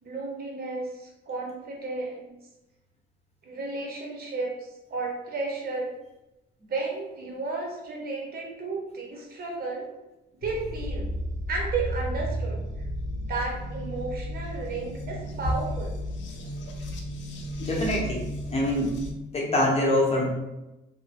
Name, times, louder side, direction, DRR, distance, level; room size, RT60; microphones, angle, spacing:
voice 1, 0.0-2.3 3.4-5.9 6.7-9.8 10.4-11.1 11.5-12.6 13.2-16.0, right 3 dB, 50° right, -1 dB, 0.9 m, -33 dB
sound 1, 10.4-19.1, equal, 70° left, 0.5 m, -34 dB
voice 2, 17.6-19.0 19.3-20.3, left 1 dB, 30° left, -3 dB, 0.9 m, -25 dB
2.8 x 2.1 x 2.8 m, 0.97 s
cardioid pair, 90°, 20 cm